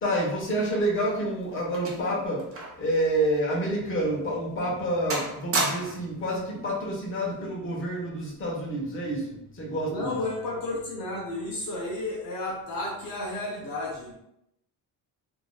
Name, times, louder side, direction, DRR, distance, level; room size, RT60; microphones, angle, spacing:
voice 1, 0.0-2.5 2.8-10.2, right 1 dB, 30° left, -4 dB, 1.2 m, -28 dB
sound 1, 0.8-2.9 3.2-3.4 4.0-4.1 4.6-4.8 5.1-6.1 7.1-7.4, right 2 dB, 35° right, 0.8 m, -32 dB
voice 2, 9.8-14.1, left 2 dB, 55° left, -4 dB, 1.0 m, -32 dB
4.0 x 3.0 x 2.3 m, 0.81 s
cardioid pair, 130°, 40 cm